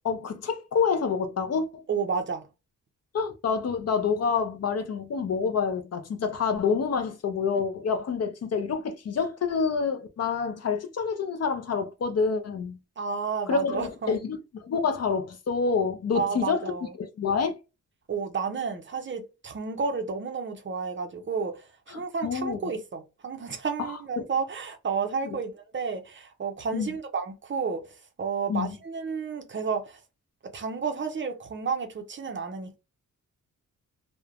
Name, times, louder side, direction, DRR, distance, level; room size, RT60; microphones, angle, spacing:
voice 1, 0.0-1.8 3.1-12.8 13.5-16.7 17.0-17.6 21.9-22.6 23.8-24.2 26.7-26.9 28.5-28.7, left 5 dB, 50° left, 0.5 m, -27 dB
voice 2, 1.9-2.4 13.0-14.2 16.1-16.9 18.1-27.8 28.2-30.0 30.5-32.8, right 5 dB, 35° right, 0.5 m, -31 dB
2.9 x 2.1 x 2.4 m
wide cardioid pair, 155°, 33 cm